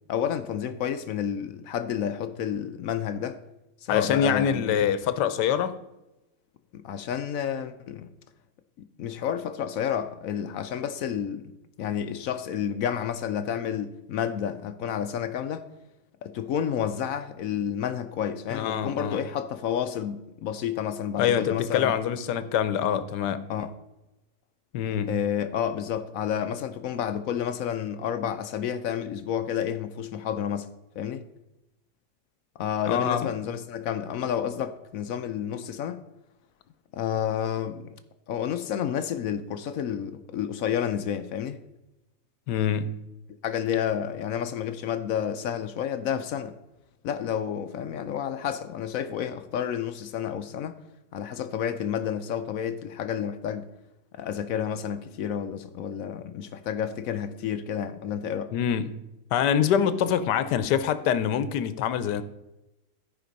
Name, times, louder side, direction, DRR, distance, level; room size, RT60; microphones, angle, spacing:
voice 1, 0.1-3.4 3.8-4.8 6.7-8.1 8.8-11.5 11.8-15.6 16.2-21.9 23.5-23.7 25.1-30.7 30.9-31.3 32.6-36.0 36.9-38.0 38.3-41.6 43.4-46.6 47.0-50.8 51.1-53.7 54.1-58.5, left 9 dB, 70° left, 0.9 m, -30 dB
voice 2, 3.9-5.7 18.5-19.2 21.2-23.5 24.7-25.2 32.9-33.3 42.5-43.0 58.5-59.0 59.3-62.2, left 8 dB, 85° left, 1.3 m, -25 dB
12.5 x 5.1 x 5.2 m
omnidirectional pair, 1.8 m